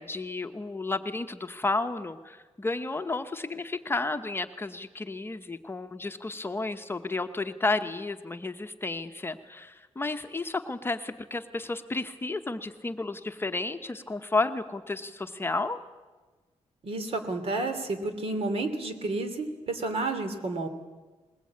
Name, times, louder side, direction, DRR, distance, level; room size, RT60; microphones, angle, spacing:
voice 1, 0.0-15.8, left 3 dB, 20° left, 7 dB, 0.9 m, -32 dB
voice 2, 16.8-20.7, right 2 dB, 60° right, 7 dB, 2.8 m, -31 dB
21.0 x 20.5 x 8.5 m, 1.3 s
wide cardioid pair, 130°, 11 cm